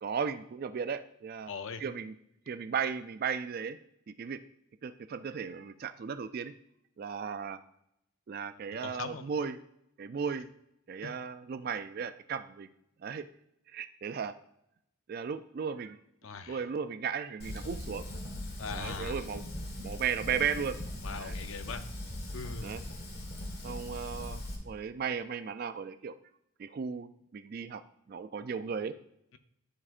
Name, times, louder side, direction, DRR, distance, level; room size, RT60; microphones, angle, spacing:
voice 1, 0.0-1.5 1.8-2.1 2.5-3.8 4.1-4.4 4.8-6.5 7.0-7.6 8.3-9.6 10.0-10.5 10.9-12.7 13.0-13.3 13.7-14.3 15.1-16.0 16.5-18.0 18.7-19.4 19.8-20.8 21.2-21.3 22.6-22.8 23.6-26.2 26.6-27.8 28.1-28.9, right 6 dB, 45° right, 12 dB, 0.3 m, -35 dB
voice 2, 1.5-1.8 8.7-9.3 11.0-11.1 16.2-16.6 18.6-19.2 21.0-21.9 22.3-22.7, left 5 dB, 65° left, 10 dB, 0.6 m, -40 dB
Fire, 17.4-24.5, left 1 dB, 45° left, 1.6 m, -40 dB
13.0 x 4.9 x 2.5 m, 0.79 s
head